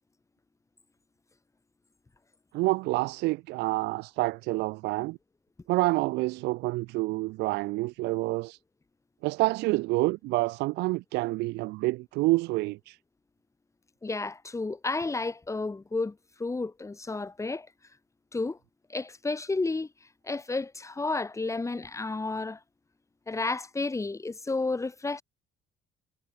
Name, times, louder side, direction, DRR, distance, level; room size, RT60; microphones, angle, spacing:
voice 1, 2.5-5.2 5.7-8.6 9.2-13.0, right 21 dB, 90° right, 0.7 m, -28 dB
voice 2, 14.0-17.7 18.3-18.6 18.9-19.9 20.2-22.6 23.3-25.2, left 3 dB, 15° left, 5.0 m, -31 dB
cardioid pair, 110°, 17 cm